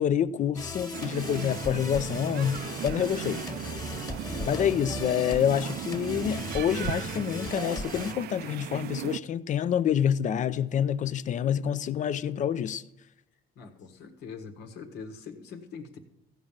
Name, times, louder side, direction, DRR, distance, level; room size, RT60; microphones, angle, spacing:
voice 1, 0.0-3.4 4.4-12.8, left 9 dB, 45° left, 0.5 m, -27 dB
sound 1, 0.5-8.1, left 2 dB, 20° left, 1.6 m, -37 dB
sound 2, 0.9-9.2, right 13 dB, 70° right, 0.5 m, -37 dB
voice 2, 4.2-4.8 13.5-16.0, left 5 dB, 85° left, 1.6 m, -43 dB
15.5 x 5.3 x 7.3 m
cardioid pair, 110°, 17 cm